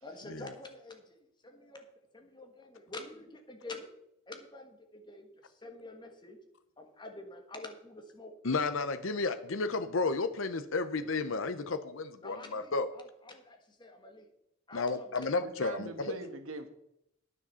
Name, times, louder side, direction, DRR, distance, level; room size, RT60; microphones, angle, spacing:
voice 1, 0.0-1.8 2.1-3.9 4.3-6.4 6.8-8.6 12.2-14.3 14.7-15.3, left 2 dB, 20° left, 4 dB, 1.5 m, -48 dB
voice 2, 8.4-12.9 14.7-16.1, left 3 dB, 70° left, 10 dB, 0.7 m, -32 dB
voice 3, 15.4-16.7, right 3 dB, 85° right, 8 dB, 1.4 m, -42 dB
9.5 x 7.5 x 6.9 m, 0.79 s
head